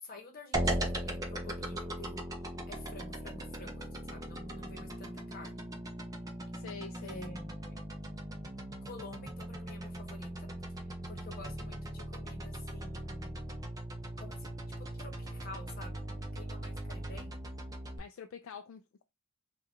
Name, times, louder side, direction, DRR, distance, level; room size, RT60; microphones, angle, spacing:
voice 1, 0.0-2.2 2.7-5.6 7.0-7.8 8.8-13.3 14.2-14.5 14.8-17.4, left 2 dB, 45° left, 0.9 m, -50 dB
sound 1, 0.5-18.0, right 1 dB, 15° right, 0.5 m, -39 dB
voice 2, 6.5-7.3 18.0-19.0, left 6 dB, 65° left, 0.3 m, -46 dB
3.6 x 2.3 x 3.0 m
head